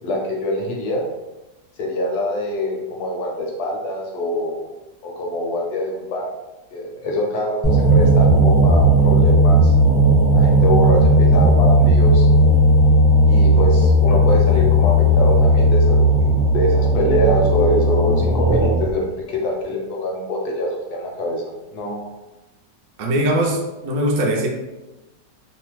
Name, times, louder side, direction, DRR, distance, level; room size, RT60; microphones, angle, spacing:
voice 1, 0.0-1.1 1.8-4.6 5.0-6.3 6.7-9.7 10.3-12.3 13.2-21.4 21.7-22.1, left 1 dB, 70° left, -1 dB, 1.1 m, -24 dB
sound 1, 7.6-18.9, right 1 dB, 5° right, 0.5 m, -15 dB
voice 2, 23.0-24.5, right 1 dB, 70° right, 0 dB, 0.8 m, -20 dB
3.0 x 2.0 x 3.1 m, 1.0 s
omnidirectional pair, 1.9 m